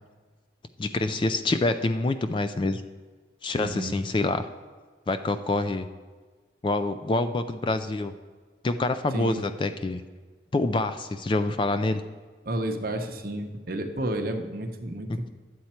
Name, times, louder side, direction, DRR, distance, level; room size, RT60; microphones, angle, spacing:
voice 1, 0.8-2.8 3.4-4.4 5.1-5.9 6.6-8.1 8.6-10.0 10.5-12.0 15.1-15.3, left 2 dB, 25° left, 10 dB, 0.3 m, -26 dB
voice 2, 3.6-4.0 9.1-9.4 12.4-15.3, right 1 dB, 50° right, 4 dB, 0.8 m, -31 dB
11.5 x 7.9 x 4.3 m, 1.4 s
head